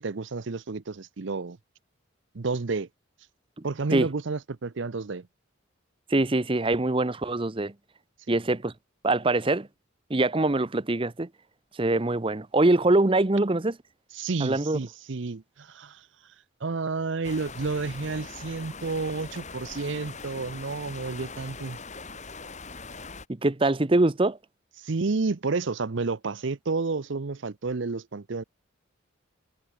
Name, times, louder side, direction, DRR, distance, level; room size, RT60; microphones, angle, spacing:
voice 1, 0.0-1.6 2.3-2.9 3.6-5.3 8.3-8.4 14.1-16.1 16.6-21.8 24.8-28.4, right 4 dB, 60° right, 0.7 m, -30 dB
voice 2, 6.1-7.7 8.3-8.7 9.0-9.7 10.1-11.3 11.8-13.8 14.4-14.8 23.4-24.4, right 2 dB, 25° right, 0.7 m, -23 dB
sound 1, 17.2-23.3, left 4 dB, 35° left, 4.1 m, -41 dB
head